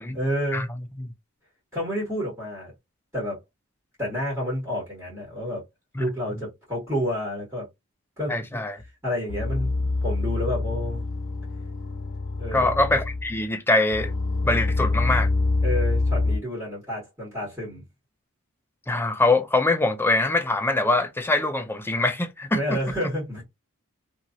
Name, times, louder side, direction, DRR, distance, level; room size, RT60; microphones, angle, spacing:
voice 1, 0.1-0.7 1.7-2.7 3.1-3.4 4.0-5.6 6.0-7.7 8.2-8.6 9.0-11.0 12.4-12.7 15.6-17.8 22.5-23.4, equal, 10° right, 1.7 m, -29 dB
voice 2, 8.3-8.8 12.5-14.1 14.4-15.3 18.9-22.6, left 2 dB, 10° left, 0.4 m, -23 dB
sound 1, 8.8-8.9 9.3-13.4 13.9-16.4, left 2 dB, 75° left, 1.0 m, -26 dB
2.9 x 2.7 x 2.5 m
head